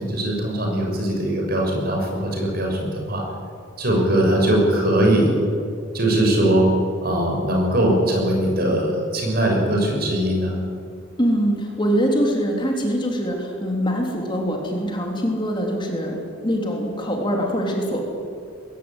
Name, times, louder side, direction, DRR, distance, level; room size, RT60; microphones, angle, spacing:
voice 1, 0.0-3.2 3.8-5.3 5.9-6.7 7.0-10.6, right 1 dB, 50° right, 0 dB, 6.3 m, -20 dB
voice 2, 11.2-18.0, equal, 25° left, 0 dB, 3.3 m, -23 dB
21.0 x 16.5 x 9.8 m, 2.4 s
head